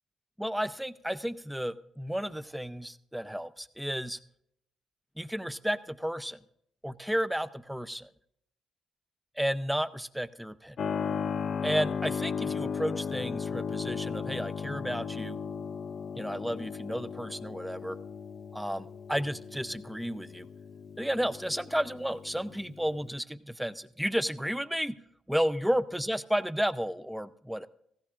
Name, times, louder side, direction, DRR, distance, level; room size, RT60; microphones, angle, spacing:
voice 1, 0.4-4.2 5.2-6.4 6.8-8.1 9.4-10.8 11.6-15.4 16.1-18.0 18.5-20.5 21.0-24.9 25.3-27.7, equal, 5° right, 13 dB, 0.5 m, -32 dB
Keyboard (musical), 10.8-23.2, left 6 dB, 55° left, 0.5 m, -36 dB
17.5 x 15.0 x 2.5 m, 0.73 s
cardioid pair, 90°, 0 cm